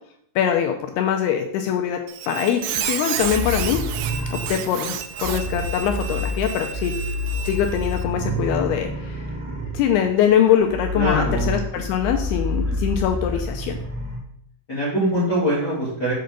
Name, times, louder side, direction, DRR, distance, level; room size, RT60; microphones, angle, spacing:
voice 1, 0.4-2.0 2.3-3.8 4.3-6.9 7.4-9.3 9.7-13.8, left 9 dB, 85° left, 4 dB, 2.4 m, -22 dB
Squeak, 2.1-8.0, right 9 dB, 85° right, 2.1 m, -31 dB
sound 1, 3.2-14.2, left 1 dB, 30° right, 2.4 m, -28 dB
voice 2, 11.0-11.5 12.7-12.8 14.7-16.1, equal, 30° left, -9 dB, 2.3 m, -23 dB
7.7 x 3.9 x 6.6 m, 0.70 s
omnidirectional pair, 5.1 m